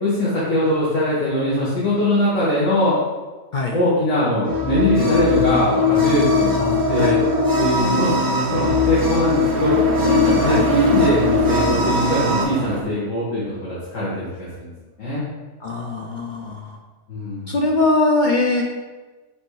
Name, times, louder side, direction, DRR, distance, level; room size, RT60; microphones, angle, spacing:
voice 1, 0.0-3.0 3.6-7.2 7.6-9.8 10.0-14.7 15.0-15.2 17.1-17.6, equal, 70° left, -10 dB, 2.0 m, -21 dB
sound 1, 4.4-12.4, left 3 dB, 25° right, 0.5 m, -20 dB
sound 2, 7.8-12.8, right 4 dB, 60° right, 0.9 m, -28 dB
voice 2, 15.6-16.8 17.5-18.6, left 2 dB, 55° left, 1 dB, 0.6 m, -21 dB
5.3 x 4.2 x 4.7 m, 1.3 s
omnidirectional pair, 1.3 m